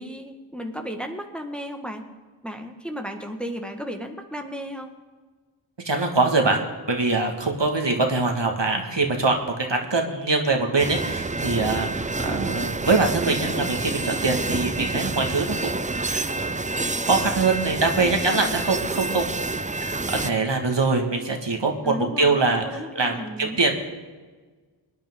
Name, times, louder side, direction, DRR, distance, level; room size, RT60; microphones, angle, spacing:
voice 1, 0.0-2.1 2.4-4.9 17.9-18.7 21.8-23.6, equal, ahead, 4 dB, 1.5 m, -34 dB
voice 2, 5.8-6.6 6.9-16.6 17.0-19.3 19.8-23.7, right 3 dB, 70° right, 2 dB, 1.9 m, -23 dB
sound 1, 10.8-20.3, right 3 dB, 15° right, 0.5 m, -28 dB
24.0 x 10.5 x 3.7 m, 1.4 s
wide cardioid pair, 45°, 45 cm